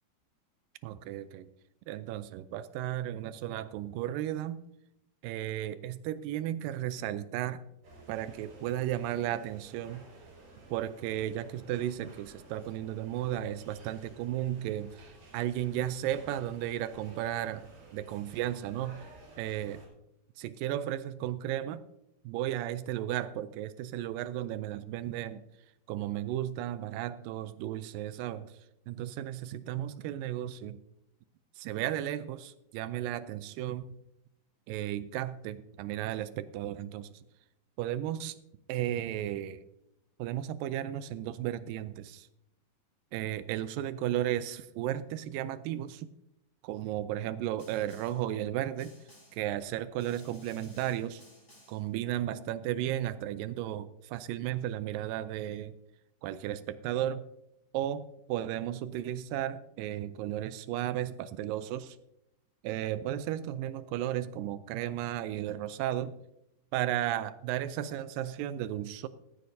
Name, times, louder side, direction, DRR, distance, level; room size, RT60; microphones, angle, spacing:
voice 1, 0.8-1.5 1.9-4.6 5.2-7.6 8.1-10.0 10.7-19.0 19.4-19.8 20.4-21.8 22.3-25.4 25.9-28.6 28.9-30.8 31.6-33.8 34.7-37.2 37.8-38.4 38.7-39.6 40.2-42.3 43.1-46.1 46.6-48.9 49.3-51.2 51.7-55.7 56.2-57.2 57.7-62.0 62.6-66.2 66.7-69.1, right 12 dB, 85° right, 14 dB, 2.0 m, -34 dB
sound 1, 7.8-19.9, right 2 dB, 60° right, 6.5 m, -54 dB
Snare drum, 47.6-48.3 48.8-49.5 50.0-51.9, left 1 dB, 20° left, 5.7 m, -58 dB
15.0 x 14.5 x 2.7 m, 0.83 s
omnidirectional pair, 4.4 m